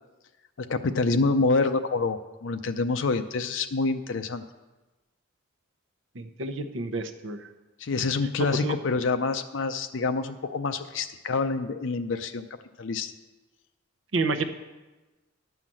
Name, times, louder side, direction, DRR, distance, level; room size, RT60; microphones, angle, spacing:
voice 1, 0.6-4.4 7.8-12.5 12.8-13.1, left 3 dB, 65° left, 8 dB, 0.5 m, -27 dB
voice 2, 6.1-7.5 8.5-8.8 14.1-14.4, right 3 dB, 70° right, 9 dB, 0.8 m, -29 dB
11.0 x 5.8 x 7.5 m, 1.1 s
head